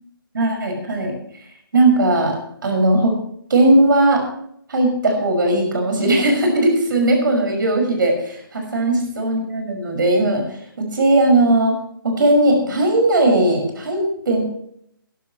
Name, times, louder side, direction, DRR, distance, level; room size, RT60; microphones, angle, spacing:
voice 1, 0.3-1.1 1.7-2.4 2.6-3.1 3.5-4.2 4.7-11.7 12.0-14.4, right 2 dB, 60° right, 3 dB, 5.8 m, -18 dB
22.0 x 11.0 x 3.1 m, 0.70 s
hypercardioid pair, 170°, 12 cm